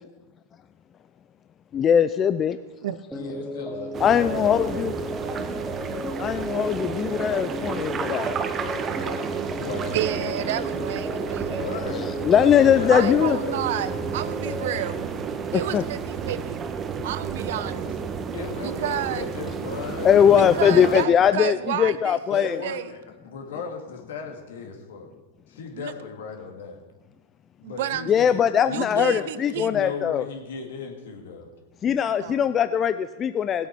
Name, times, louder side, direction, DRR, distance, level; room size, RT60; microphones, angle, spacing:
voice 1, 1.7-2.6 4.0-4.9 6.2-8.3 12.2-13.4 15.5-15.8 20.0-22.6 28.1-30.2 31.8-33.7, left 8 dB, 30° left, 11 dB, 0.4 m, -20 dB
voice 2, 3.1-6.4 9.6-10.0 10.6-10.8 11.4-13.7 18.3-21.2 22.3-25.1 25.5-26.8 27.6-31.5 32.2-32.3, left 5 dB, 70° left, 2 dB, 2.3 m, -36 dB
sound 1, 3.1-14.8, equal, ahead, 1.0 m, -34 dB
sound 2, 3.9-21.0, right 6 dB, 25° right, 1.2 m, -32 dB
voice 3, 9.9-11.6 12.9-15.1 15.5-16.7 17.0-17.9 18.6-19.3 20.3-22.9 25.8-25.9 27.6-28.1 28.7-29.7 32.2-32.5, right 11 dB, 65° right, 16 dB, 0.6 m, -31 dB
17.0 x 8.3 x 4.7 m, 1.2 s
hypercardioid pair, 105°, 0 cm